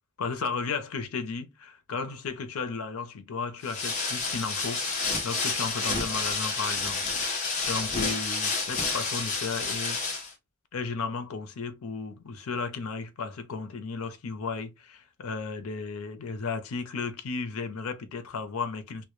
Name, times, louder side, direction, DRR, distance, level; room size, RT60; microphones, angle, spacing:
voice 1, 0.2-10.0 10.7-19.0, left 4 dB, 85° left, 0.5 m, -34 dB
sound 1, 3.6-10.3, left 4 dB, 35° left, 0.5 m, -30 dB
2.1 x 2.1 x 2.9 m
head